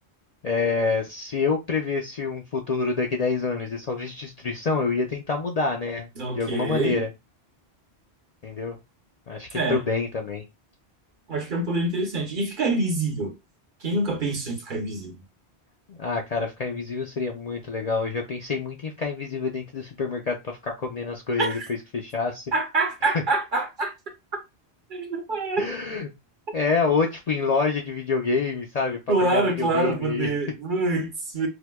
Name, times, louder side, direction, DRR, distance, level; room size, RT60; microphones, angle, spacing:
voice 1, 0.4-6.1 6.3-7.1 8.4-8.8 9.3-10.4 15.9-21.6 21.9-22.5 25.6-26.1 26.5-30.3, left 4 dB, 50° left, 0.5 m, -27 dB
voice 2, 6.2-7.0 9.5-9.8 11.3-13.3 13.8-15.2 21.4-21.7 22.5-23.9 24.9-25.7 29.1-31.5, right 2 dB, 55° right, 0.9 m, -26 dB
4.5 x 2.2 x 2.2 m
omnidirectional pair, 1.1 m